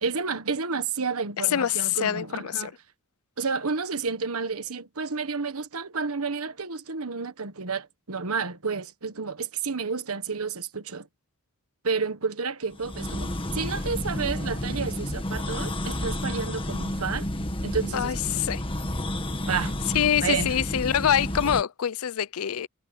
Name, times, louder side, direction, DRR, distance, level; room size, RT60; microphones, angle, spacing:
voice 1, 0.0-2.7 3.4-11.1 11.8-17.3 17.6-18.4 19.5-19.8 20.2-20.5, right 5 dB, 75° right, 1.4 m, -30 dB
voice 2, 1.4-2.7 17.9-18.6 19.9-22.7, left 9 dB, 70° left, 0.5 m, -25 dB
sound 1, 12.7-21.6, left 1 dB, 25° left, 1.7 m, -31 dB
head